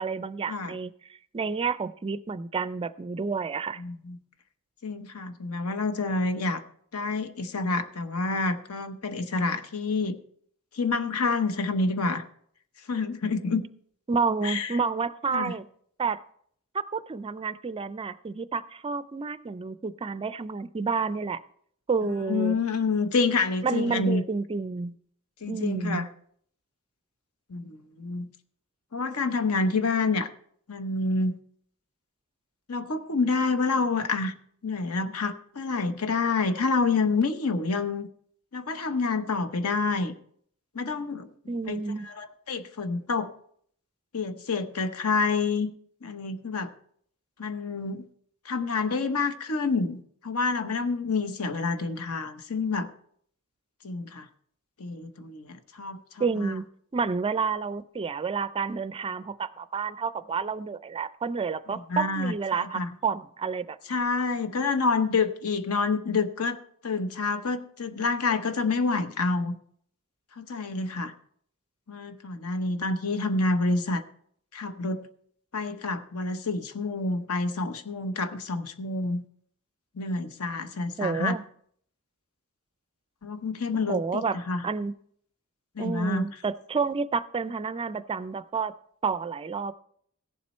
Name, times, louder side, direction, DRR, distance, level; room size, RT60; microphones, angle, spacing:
voice 1, 0.0-3.8 14.1-15.7 16.0-16.2 16.7-21.4 21.9-22.6 23.6-24.9 25.5-26.1 41.5-42.1 56.2-56.6 56.9-64.0 81.0-81.4 83.9-84.4 84.6-84.9 85.8-88.7 89.0-89.7, right 5 dB, 25° right, 15 dB, 0.4 m, -30 dB
voice 2, 3.8-4.2 4.8-6.6 6.9-10.2 10.7-12.2 12.9-13.6 14.4-14.7 15.3-15.5 22.0-24.2 25.4-26.1 27.5-28.3 28.9-30.3 30.7-31.3 32.7-34.3 34.6-38.1 38.5-40.1 40.7-41.3 41.7-41.8 42.1-43.3 44.1-45.7 46.0-46.7 47.4-48.0 48.4-52.9 53.8-54.3 54.8-56.5 61.9-62.9 63.9-66.6 66.8-69.6 70.4-71.1 71.9-74.0 74.5-75.0 75.5-79.2 80.0-81.4 83.2-84.6 85.8-86.3, left 3 dB, 70° left, 10 dB, 0.9 m, -28 dB
16.5 x 7.3 x 4.3 m, 0.64 s
head